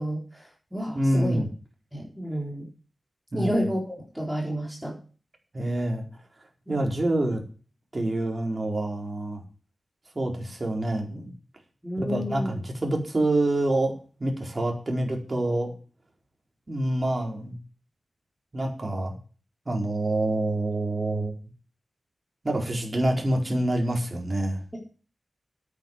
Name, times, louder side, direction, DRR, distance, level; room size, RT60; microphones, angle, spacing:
voice 1, 0.0-1.4 1.9-2.6 3.3-5.0 6.7-6.8 11.8-12.5 24.7-24.8, equal, 5° right, -1 dB, 3.9 m, -30 dB
voice 2, 0.9-1.5 3.3-3.7 5.5-6.0 6.7-7.4 7.9-9.4 10.1-11.3 12.0-13.9 14.2-15.7 16.7-17.5 18.5-19.1 19.7-21.3 22.4-24.8, right 1 dB, 35° right, 2 dB, 4.5 m, -26 dB
9.4 x 9.2 x 8.2 m, 0.38 s
wide cardioid pair, 90°, 0 cm